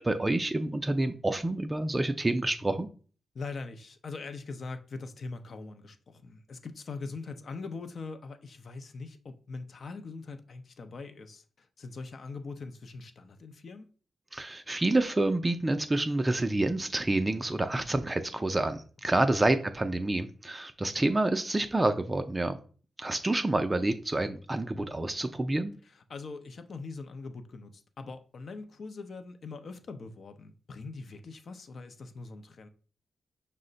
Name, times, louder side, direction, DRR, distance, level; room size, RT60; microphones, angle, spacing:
voice 1, 0.1-2.9 14.3-22.6 23.0-25.7, right 2 dB, 20° right, 0.3 m, -28 dB
voice 2, 3.3-13.9 19.1-19.3 25.8-32.7, left 4 dB, 60° left, 0.5 m, -42 dB
5.5 x 2.1 x 3.8 m
cardioid pair, 80°, 0 cm